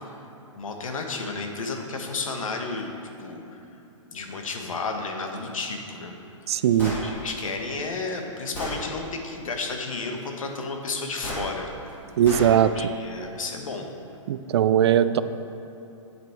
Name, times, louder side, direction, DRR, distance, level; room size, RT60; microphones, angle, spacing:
voice 1, 0.5-2.9 3.2-3.6 4.1-6.2 6.8-11.7 12.8-13.9, left 3 dB, 85° left, 3 dB, 1.3 m, -32 dB
voice 2, 6.5-6.9 12.2-12.7 14.3-15.2, right 10 dB, 55° right, 13 dB, 0.4 m, -19 dB
Gunshot gunfire, 6.8-7.0 7.9-8.0 8.5-8.8 11.2-11.4 12.2-12.5, equal, 10° left, 2.1 m, -32 dB
8.2 x 8.1 x 4.5 m, 3.0 s
hypercardioid pair, 155°, 17 cm